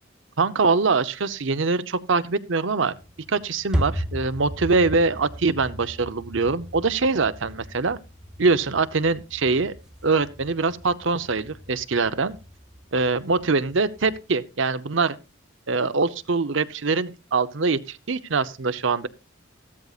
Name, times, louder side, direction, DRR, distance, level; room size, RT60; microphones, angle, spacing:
voice 1, 0.4-2.9 3.3-8.0 8.4-9.7 10.0-12.4 12.9-15.2 15.7-19.1, right 4 dB, 65° right, 0.7 m, -23 dB
sound 1, 2.9-14.2, equal, 5° right, 0.7 m, -36 dB
15.0 x 13.0 x 2.4 m
head